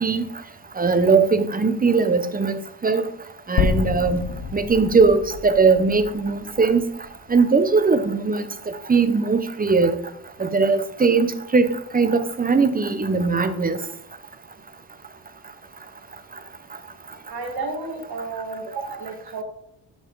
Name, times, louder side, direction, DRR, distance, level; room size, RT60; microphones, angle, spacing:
voice 1, 0.8-3.0 3.5-4.2 4.5-6.8 7.3-8.4 8.9-10.0 10.4-13.8, right 4 dB, 20° right, 0.7 m, -19 dB
sound 1, 3.6-7.8, left 6 dB, 60° left, 0.8 m, -28 dB
voice 2, 17.3-19.4, right 3 dB, 75° right, 1.8 m, -32 dB
11.5 x 4.8 x 3.9 m
cardioid pair, 85°, 39 cm